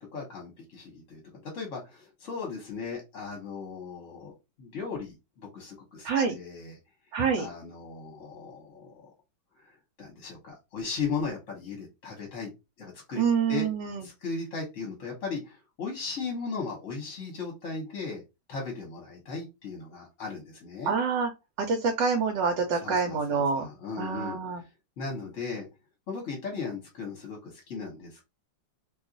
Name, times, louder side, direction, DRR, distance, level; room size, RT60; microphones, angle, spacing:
voice 1, 0.0-4.3 4.6-6.8 7.4-9.1 9.6-9.7 10.0-12.5 12.8-13.7 14.0-18.2 18.5-21.0 22.7-24.4 25.0-25.7 26.1-28.2, left 4 dB, 50° left, 0 dB, 1.1 m, -37 dB
voice 2, 6.0-6.4 7.1-7.5 13.1-14.0 20.9-21.3 21.6-23.7 24.0-24.6, right 5 dB, 80° right, 4 dB, 1.3 m, -26 dB
2.9 x 2.4 x 3.7 m, 0.25 s
omnidirectional pair, 2.0 m